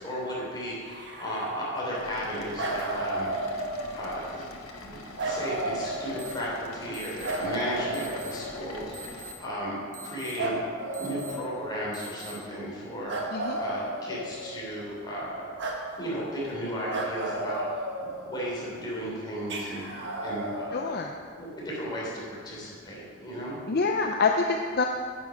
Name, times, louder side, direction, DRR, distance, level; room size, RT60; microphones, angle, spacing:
voice 1, 0.0-3.7 3.9-4.5 4.8-10.6 10.9-15.5 16.0-20.9 21.3-23.6, equal, 20° left, -5 dB, 3.2 m, -35 dB
sound 1, 0.9-2.2 2.6-4.2 5.2-6.6 7.2-8.9 10.4-12.0 13.1-14.7 15.6-15.8 16.9-18.5 19.5-20.7, right 2 dB, 55° right, 1.5 m, -33 dB
sound 2, 1.9-9.3, left 2 dB, 85° left, 1.3 m, -44 dB
sound 3, 6.2-6.3 6.9-7.3 7.9-8.3 8.9-9.3 9.9-10.3 10.9-11.3 11.9-12.3, right 5 dB, 35° right, 1.7 m, -43 dB
voice 2, 20.7-21.1 23.7-24.9, left 4 dB, 50° left, 3 dB, 0.5 m, -26 dB
11.0 x 8.3 x 5.1 m, 2.1 s
head